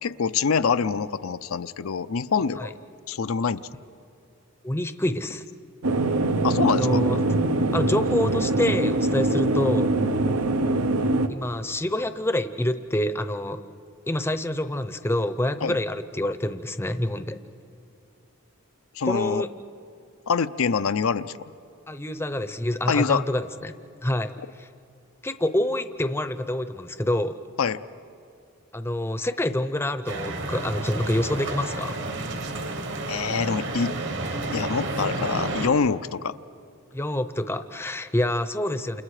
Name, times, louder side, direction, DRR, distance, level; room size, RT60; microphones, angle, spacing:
voice 1, 0.0-2.7 3.1-3.6 6.4-7.0 15.6-15.8 18.9-19.4 20.3-21.5 22.9-23.2 27.6-27.8 33.1-33.9 34.5-36.4, left 5 dB, 75° left, 12 dB, 0.6 m, -25 dB
voice 2, 4.6-5.4 6.7-7.2 7.7-10.1 11.3-13.6 14.1-17.4 19.0-19.5 21.9-23.7 24.0-24.3 24.6-24.7 25.2-27.4 28.7-32.0 36.9-39.0, left 1 dB, 10° left, 10 dB, 0.7 m, -27 dB
sound 1, 5.8-11.3, right 2 dB, 85° right, 1.0 m, -23 dB
sound 2, 30.1-35.7, right 2 dB, 60° right, 1.6 m, -31 dB
29.0 x 28.5 x 4.9 m, 2.5 s
head